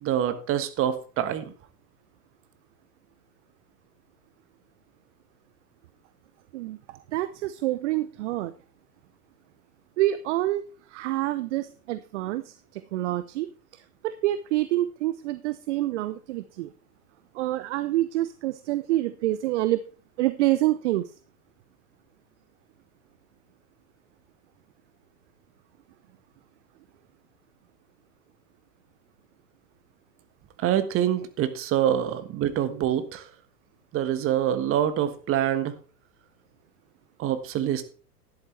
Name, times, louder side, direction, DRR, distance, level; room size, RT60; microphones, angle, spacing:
voice 1, 0.0-1.5 30.6-33.2 33.9-35.7 37.2-37.8, right 10 dB, 25° right, 11 dB, 1.4 m, -25 dB
voice 2, 6.5-8.5 10.0-10.6 10.9-16.7 17.3-19.8 20.2-21.0, right 15 dB, 45° right, 13 dB, 0.7 m, -27 dB
12.0 x 10.5 x 3.3 m, 0.39 s
figure-of-eight pair, 100°, 47 cm